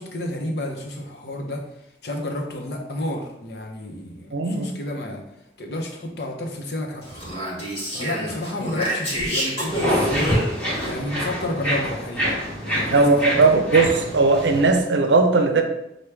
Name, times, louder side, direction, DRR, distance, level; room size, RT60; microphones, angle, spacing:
voice 1, 0.0-1.7 2.0-5.2 5.6-7.1 7.9-10.4 10.8-12.4 12.6-13.7, left 1 dB, 65° left, 1 dB, 0.7 m, -30 dB
voice 2, 4.3-4.7 12.9-15.6, right 3 dB, 85° right, 5 dB, 0.5 m, -18 dB
Speech, 7.0-10.9, equal, 30° left, 1.3 m, -28 dB
sound 1, 9.7-14.8, equal, 10° left, 1.0 m, -26 dB
6.0 x 2.2 x 3.3 m, 0.84 s
head